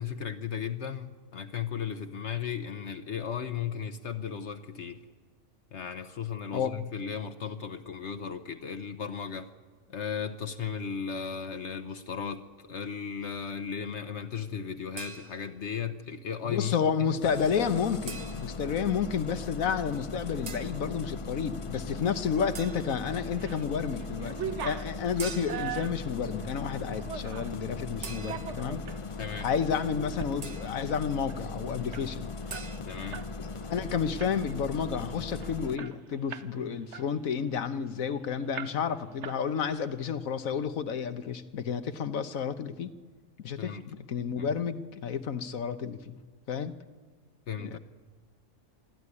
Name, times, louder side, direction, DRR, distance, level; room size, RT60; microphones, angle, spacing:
voice 1, 0.0-5.0 5.7-9.5 9.9-17.2 29.2-29.5 32.8-33.2 43.6-43.8 44.4-44.5 47.5-47.8, left 7 dB, 60° left, 8 dB, 1.2 m, -36 dB
sound 1, 15.0-15.7 18.1-18.7 20.5-20.8 22.5-23.1 25.2-25.8 28.0-28.7 30.4-30.9 32.5-32.8, right 5 dB, 40° right, 0.7 m, -43 dB
voice 2, 16.4-28.8 29.4-32.3 33.4-42.9 43.4-46.2 46.5-46.7 47.6-47.8, left 7 dB, 85° left, 10 dB, 1.5 m, -31 dB
Engine starting, 17.2-35.8, left 3 dB, 40° left, 0.5 m, -39 dB
sound 2, 23.1-23.6 24.0-27.6 28.1-29.0 29.5-29.6 30.0-30.3 30.6-30.7 31.0-33.3 33.6-33.8 34.2-34.6 35.1-35.2 35.4-36.6 36.9-38.1 38.5-39.0 39.2-39.9, right 8 dB, 60° right, 1.1 m, -40 dB
25.0 x 13.0 x 9.8 m, 1.5 s
omnidirectional pair, 1.4 m